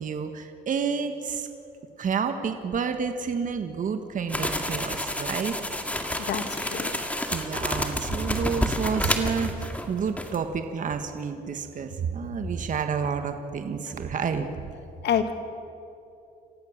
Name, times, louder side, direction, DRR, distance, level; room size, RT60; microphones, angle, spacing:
voice 1, 0.0-1.5 2.0-5.6 7.3-14.7, right 6 dB, 50° right, 7 dB, 1.6 m, -29 dB
sound 1, 4.3-9.9 10.2-10.4, left 1 dB, 10° left, 2.1 m, -29 dB
voice 2, 6.2-6.9 15.0-15.3, left 8 dB, 75° left, 8 dB, 1.9 m, -27 dB
28.0 x 15.5 x 7.4 m, 2.7 s
cardioid pair, 105°, 18 cm